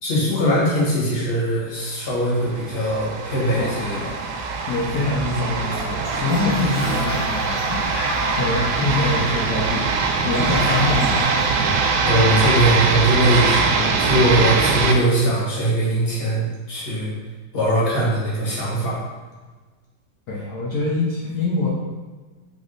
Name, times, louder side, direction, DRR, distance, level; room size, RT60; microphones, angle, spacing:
voice 1, 0.0-4.2 8.8-8.9 12.0-17.1 17.5-19.0, right 1 dB, 35° left, -7 dB, 1.6 m, -21 dB
sound 1, 2.4-14.9, right 4 dB, 90° right, 1.3 m, -22 dB
voice 2, 3.6-4.0 4.7-7.8 8.4-9.9 10.2-11.2 12.0-12.4 20.3-21.7, left 2 dB, 65° left, -5 dB, 1.2 m, -24 dB
Toilet flush, 5.6-12.5, equal, 90° left, 1.9 m, -31 dB
3.6 x 3.5 x 3.8 m, 1.3 s
omnidirectional pair, 2.0 m